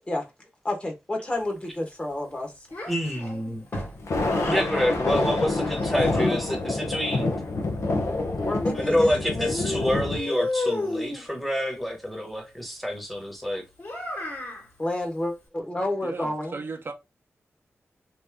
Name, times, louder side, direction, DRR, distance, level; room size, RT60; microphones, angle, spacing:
voice 1, 0.6-2.5 8.4-9.5 14.8-16.6, left 1 dB, 25° left, 1.2 m, -29 dB
Child speech kid speaking, 2.7-4.7 5.6-6.8 8.0-9.2 9.5-11.3 13.8-14.7, left 2 dB, 45° left, 1.8 m, -33 dB
voice 2, 2.9-3.6 4.5-7.4 8.7-13.6, equal, ahead, 1.1 m, -28 dB
Thunder, 4.0-10.2, left 2 dB, 80° left, 0.8 m, -27 dB
voice 3, 16.0-16.9, right 4 dB, 50° right, 0.6 m, -36 dB
3.1 x 2.7 x 3.4 m
wide cardioid pair, 85°, 5 cm